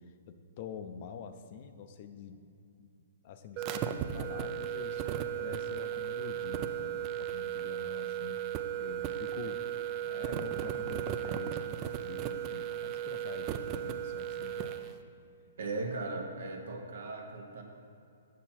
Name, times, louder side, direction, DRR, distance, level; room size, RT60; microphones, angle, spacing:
voice 1, 0.3-2.5 2.8-2.9 3.2-5.1 5.4-8.5 8.8-9.6 10.0-14.8, left 7 dB, 45° left, 9 dB, 0.5 m, -46 dB
sound 1, 3.6-14.9, right 10 dB, 30° right, 0.4 m, -36 dB
voice 2, 15.6-17.6, right 3 dB, 70° right, 2 dB, 1.1 m, -38 dB
7.3 x 5.9 x 4.3 m, 2.5 s
hypercardioid pair, 135°, 0 cm